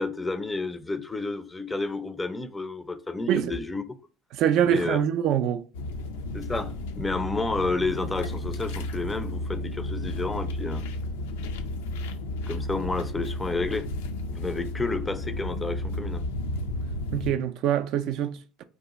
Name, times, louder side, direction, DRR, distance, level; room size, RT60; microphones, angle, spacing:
voice 1, 0.0-3.8 4.6-5.0 6.3-10.8 12.5-13.9 14.3-16.2, left 3 dB, 15° left, 0.4 m, -30 dB
voice 2, 4.3-5.6 17.1-18.6, right 9 dB, 60° right, 0.3 m, -24 dB
sound 1, 5.7-17.3, left 1 dB, 80° left, 0.4 m, -33 dB
2.6 x 2.3 x 3.9 m
hypercardioid pair, 75°, 0 cm